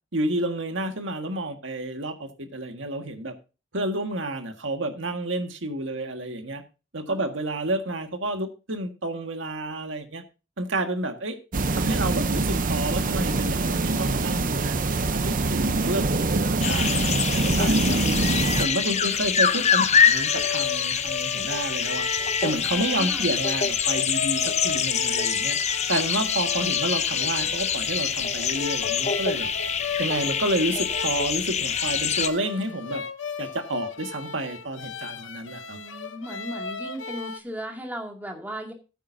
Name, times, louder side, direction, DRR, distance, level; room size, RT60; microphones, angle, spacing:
voice 1, 0.1-3.3 3.7-6.6 6.9-10.2 10.6-11.4 11.7-18.0 18.6-22.1 22.4-25.6 25.9-29.5 30.0-33.0 33.4-35.8, right 1 dB, 80° right, 1.7 m, -30 dB
sound 1, 11.5-18.7, right 3 dB, 45° right, 0.8 m, -24 dB
sound 2, 16.6-32.3, left 7 dB, 35° left, 0.8 m, -25 dB
voice 2, 18.8-19.4 22.7-23.3 35.6-38.7, equal, 10° right, 2.3 m, -37 dB
sound 3, 19.2-37.4, left 5 dB, 75° left, 0.9 m, -36 dB
14.5 x 9.1 x 2.7 m
head